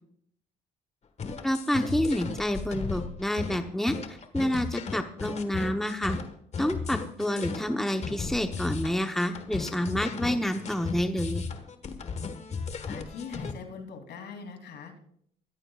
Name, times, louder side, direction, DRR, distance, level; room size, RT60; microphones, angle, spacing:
sound 1, 1.2-13.5, left 5 dB, 40° left, 1.5 m, -35 dB
voice 1, 1.4-6.2 6.6-11.4, equal, ahead, 6 dB, 1.0 m, -28 dB
voice 2, 12.8-15.0, left 5 dB, 75° left, 4 dB, 3.1 m, -41 dB
23.5 x 15.0 x 2.4 m, 0.66 s
cardioid pair, 100°, 18 cm